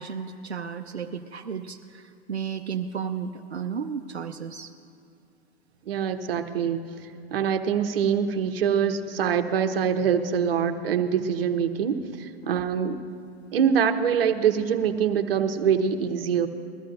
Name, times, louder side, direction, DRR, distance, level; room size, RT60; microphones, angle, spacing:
voice 1, 0.0-4.7 12.5-12.6, right 7 dB, 85° right, 3 dB, 0.6 m, -33 dB
voice 2, 5.9-6.8 7.3-13.0 13.5-16.5, right 7 dB, 65° right, 7 dB, 1.0 m, -24 dB
21.0 x 13.5 x 2.5 m, 2.6 s
figure-of-eight pair, 100°, 32 cm